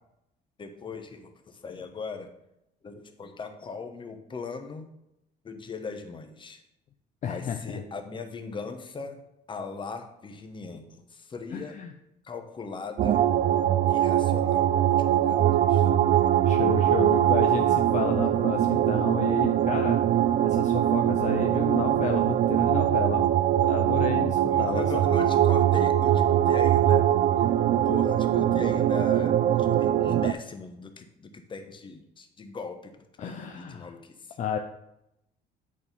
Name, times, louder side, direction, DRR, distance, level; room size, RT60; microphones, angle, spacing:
voice 1, 0.6-2.3 2.8-4.9 5.4-6.6 7.2-9.2 9.5-11.8 12.2-13.2 13.9-15.9 18.7-18.8 24.5-27.1 27.9-32.9 33.2-34.4, left 4 dB, 30° left, 7 dB, 1.0 m, -39 dB
voice 2, 7.2-7.8 11.5-11.9 16.5-20.0 20.4-23.3 23.5-24.9 33.2-33.9 34.4-34.6, left 7 dB, 45° left, 5 dB, 0.6 m, -32 dB
sound 1, 13.0-30.3, right 11 dB, 50° right, 0.4 m, -22 dB
8.6 x 4.2 x 5.3 m, 0.83 s
cardioid pair, 110°, 17 cm